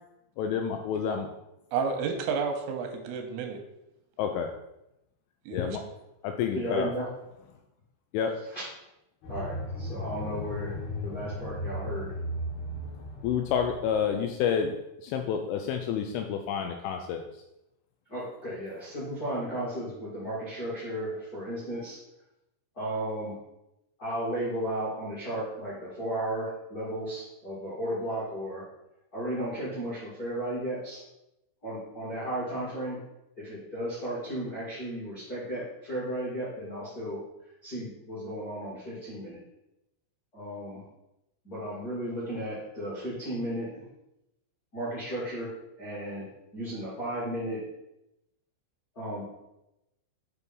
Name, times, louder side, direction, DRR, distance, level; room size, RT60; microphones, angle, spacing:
voice 1, 0.4-1.3 4.2-4.5 5.5-5.8 6.2-6.9 8.1-8.3 13.2-14.7 15.0-17.2, left 7 dB, 85° left, 4 dB, 2.8 m, -29 dB
voice 2, 1.7-3.6 5.5-5.8, right 5 dB, 85° right, 4 dB, 3.1 m, -31 dB
voice 3, 6.5-7.1 8.5-8.6 9.3-12.1 18.1-22.0 22.7-23.4 24.0-28.6 29.1-31.0 31.6-33.0 33.4-37.2 37.6-39.4 40.3-40.8 41.4-43.8 44.7-45.5 45.8-47.6 48.9-49.2, right 1 dB, 45° left, -8 dB, 1.1 m, -34 dB
sound 1, 9.2-14.2, left 1 dB, 65° left, 2.9 m, -36 dB
8.1 x 2.9 x 5.3 m, 0.89 s
omnidirectional pair, 5.9 m